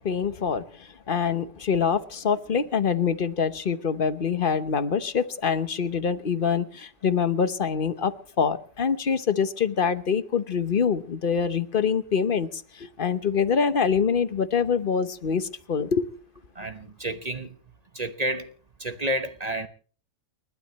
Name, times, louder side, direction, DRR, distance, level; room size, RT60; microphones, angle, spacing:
voice 1, 0.0-16.1, left 6 dB, 40° left, 0.9 m, -25 dB
voice 2, 16.5-17.6 17.9-18.5 18.8-19.7, right 1 dB, 30° right, 1.0 m, -30 dB
29.5 x 12.0 x 3.1 m
omnidirectional pair, 1.8 m